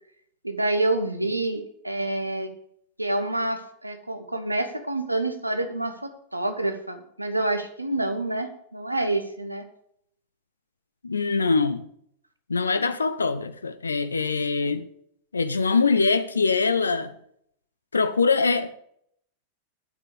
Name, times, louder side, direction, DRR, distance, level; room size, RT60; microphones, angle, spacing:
voice 1, 0.4-2.5 3.0-9.7, right 2 dB, 85° right, 1.3 m, -27 dB
voice 2, 11.0-11.9 12.5-14.9 15.3-17.1 17.9-18.7, left 4 dB, 75° left, 0.6 m, -23 dB
9.3 x 7.4 x 7.0 m
figure-of-eight pair, 90°, 0 cm